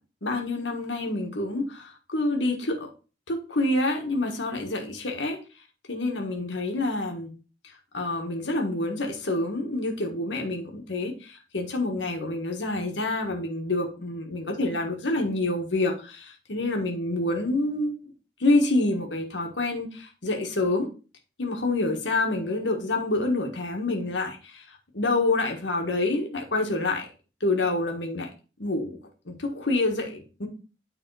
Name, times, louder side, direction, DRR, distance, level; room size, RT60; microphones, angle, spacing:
voice 1, 0.2-2.9 3.3-5.4 5.9-7.3 7.6-17.9 18.4-20.9 21.4-27.1 27.4-28.3 28.6-29.0 29.2-30.5, left 2 dB, 90° left, 2 dB, 1.5 m, -27 dB
9.2 x 3.6 x 4.7 m, 0.35 s
head